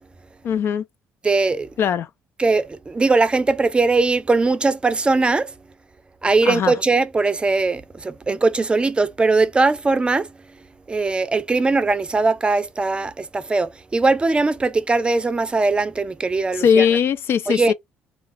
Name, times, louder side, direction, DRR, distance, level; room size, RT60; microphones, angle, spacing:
voice 1, 0.4-0.8 1.8-2.1 6.4-6.7 16.5-17.7, left 7 dB, 60° left, 0.3 m, -19 dB
voice 2, 1.2-1.7 2.4-5.5 6.2-10.3 10.9-16.9 17.5-17.7, right 3 dB, 20° right, 0.4 m, -20 dB
2.4 x 2.3 x 3.1 m
supercardioid pair, 75°, 5 cm